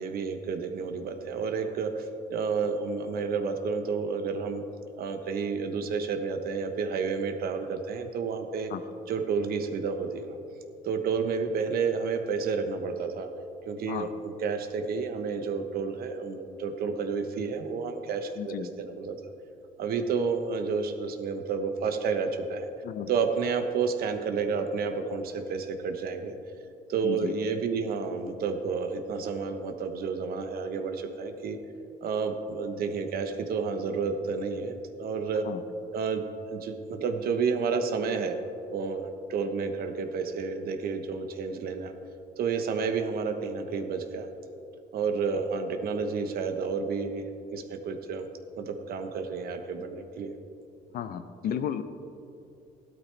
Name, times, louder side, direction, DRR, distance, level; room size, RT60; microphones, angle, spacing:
voice 1, 0.0-4.6 5.0-8.7 9.1-10.4 10.8-13.3 13.6-19.2 19.8-22.7 23.1-26.3 26.9-31.6 32.0-35.4 35.9-36.2 36.5-38.4 38.7-41.9 42.4-44.3 44.9-48.3 48.6-50.4, right 5 dB, 65° right, 7 dB, 1.1 m, -30 dB
voice 2, 18.4-18.7 22.8-23.1 27.0-27.3 35.4-35.6 50.9-51.8, left 9 dB, 60° left, 11 dB, 0.7 m, -33 dB
14.5 x 12.0 x 3.4 m, 2.6 s
cardioid pair, 110°, 17 cm